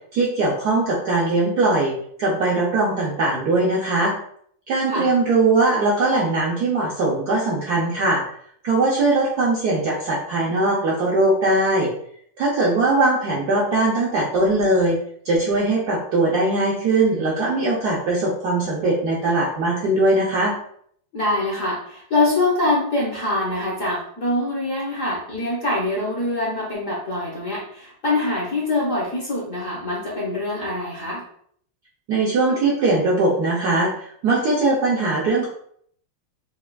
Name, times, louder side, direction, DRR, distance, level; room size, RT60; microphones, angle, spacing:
voice 1, 0.1-4.1 4.7-8.2 8.6-11.9 12.4-15.0 15.2-20.5 32.1-35.5, right 2 dB, 70° right, -4 dB, 0.9 m, -20 dB
voice 2, 21.1-31.2, left 2 dB, 50° left, -5 dB, 1.0 m, -24 dB
5.6 x 2.4 x 2.2 m, 0.63 s
omnidirectional pair, 2.3 m